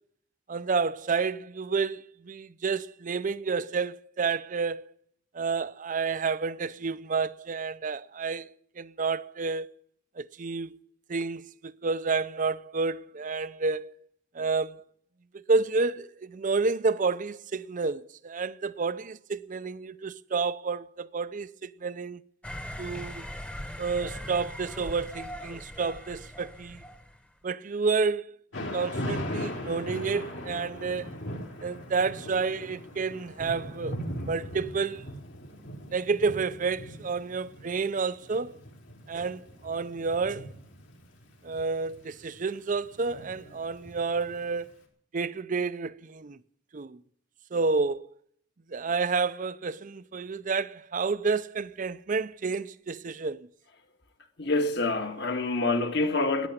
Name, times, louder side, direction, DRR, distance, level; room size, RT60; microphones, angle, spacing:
voice 1, 0.5-4.9 5.3-8.5 8.8-9.7 10.2-10.8 11.1-13.9 14.3-14.8 15.3-22.2 22.8-23.3 23.8-26.8 27.4-28.3 28.7-31.2 31.6-34.0 34.3-35.0 35.9-38.6 39.1-40.5 41.4-44.7 45.1-46.4 46.7-47.0 47.5-48.1 48.7-53.5, right 4 dB, 40° right, 0.5 m, -30 dB
sound 1, 22.4-27.2, equal, 5° left, 1.0 m, -40 dB
Thunder / Rain, 28.5-44.5, equal, 75° left, 4.1 m, -39 dB
voice 2, 54.4-56.5, left 2 dB, 60° left, 1.8 m, -26 dB
14.5 x 10.0 x 9.4 m
head